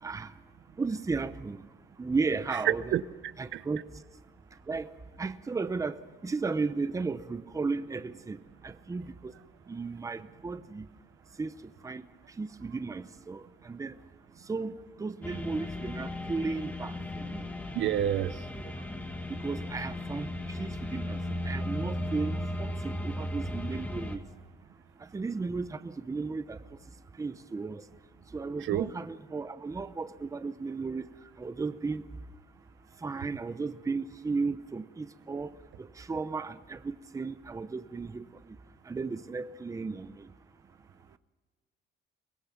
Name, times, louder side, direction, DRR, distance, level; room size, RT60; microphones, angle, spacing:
voice 1, 0.8-1.6 2.0-2.9 3.4-3.8 4.7-4.9 5.2-8.4 8.6-9.3 9.7-10.9 11.4-11.5 11.8-12.0 12.4-14.0 14.5-17.4 19.3-21.2 21.4-24.2 25.1-26.6 27.2-27.8 28.3-32.0 33.0-35.5 35.8-38.6 38.9-40.3, right 4 dB, 15° right, 12 dB, 0.7 m, -35 dB
voice 2, 2.9-3.6 17.7-18.4 28.6-28.9, right 11 dB, 70° right, 14 dB, 0.8 m, -30 dB
sound 1, 15.2-24.2, left 1 dB, 10° left, 2.1 m, -36 dB
23.5 x 20.0 x 5.9 m, 1.5 s
cardioid pair, 145°, 20 cm